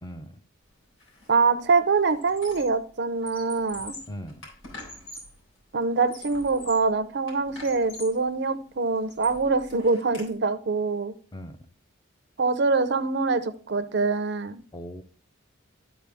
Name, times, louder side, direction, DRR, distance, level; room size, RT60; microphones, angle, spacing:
voice 1, 0.0-0.4 4.1-4.4 11.3-11.7 14.7-15.0, equal, 20° left, 7 dB, 0.6 m, -39 dB
Squeak, 1.0-1.3 1.6-2.8 3.1-5.4 5.9-6.9 7.3-8.2 8.7-10.3, left 2 dB, 85° left, 3.9 m, -44 dB
voice 2, 1.3-4.0 5.7-11.1 12.4-14.6, right 4 dB, 55° right, 12 dB, 0.6 m, -24 dB
12.0 x 4.4 x 3.5 m, 0.42 s
head